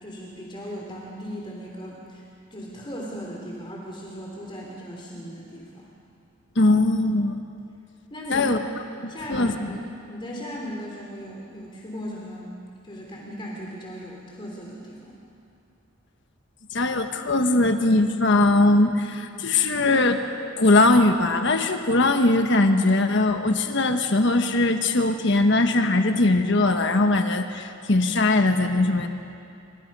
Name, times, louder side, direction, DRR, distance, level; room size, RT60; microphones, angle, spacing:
voice 1, 0.0-2.2 2.5-5.9 8.1-8.7 9.1-9.8 10.1-12.5 12.8-15.2, equal, 25° left, -2 dB, 3.2 m, -37 dB
voice 2, 6.5-7.4 8.3-8.6 9.0-9.7 16.7-20.2 20.6-29.1, left 2 dB, 60° left, 6 dB, 1.3 m, -20 dB
27.5 x 25.0 x 5.5 m, 2.7 s
head